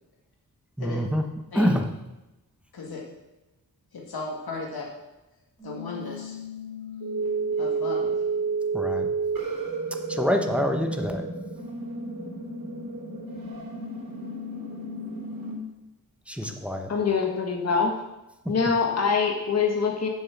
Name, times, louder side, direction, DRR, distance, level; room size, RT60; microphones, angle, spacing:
voice 1, 0.8-1.3 1.5-1.9 8.7-9.1 10.1-11.3 16.3-16.9, equal, 5° right, 5 dB, 0.8 m, -26 dB
voice 2, 3.9-4.9 5.6-6.4 7.5-8.2, left 3 dB, 90° left, -2 dB, 1.9 m, -35 dB
sound 1, 5.6-15.5, right 3 dB, 65° right, 4.2 m, -31 dB
voice 3, 16.9-17.9 18.5-20.1, left 5 dB, 45° left, 1 dB, 1.3 m, -24 dB
7.4 x 7.2 x 7.0 m, 0.98 s
wide cardioid pair, 170°, 36 cm